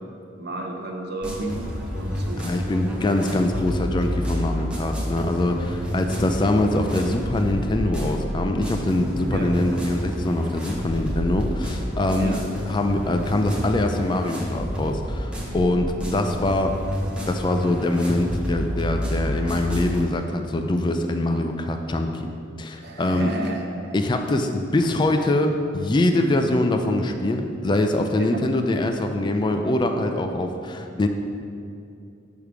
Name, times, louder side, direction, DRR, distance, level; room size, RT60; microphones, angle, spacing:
voice 1, 0.4-2.7 9.3-9.5 12.2-12.4 22.8-23.9 28.2-28.4, right 2 dB, 55° right, 1 dB, 0.7 m, -32 dB
sound 1, 1.2-20.0, equal, 5° right, 0.8 m, -29 dB
voice 2, 2.4-12.3 12.7-16.8 17.3-22.3 22.6-23.3 23.9-31.1, left 1 dB, 25° left, 5 dB, 0.3 m, -23 dB
6.5 x 3.5 x 5.9 m, 2.6 s
head